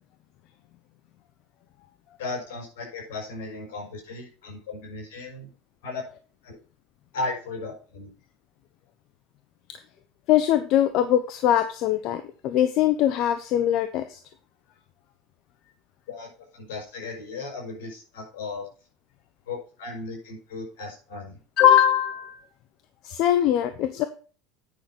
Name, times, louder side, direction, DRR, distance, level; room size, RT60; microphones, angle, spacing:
voice 1, 2.2-5.5 5.8-6.0 6.4-6.6 7.1-8.1 16.1-18.7 19.5-21.4, left 3 dB, 80° left, 1 dB, 5.4 m, -36 dB
voice 2, 10.3-14.2 21.6-22.4 23.0-24.0, left 11 dB, 60° left, 10 dB, 0.9 m, -21 dB
9.3 x 5.9 x 5.3 m, 0.38 s
supercardioid pair, 100°, 0 cm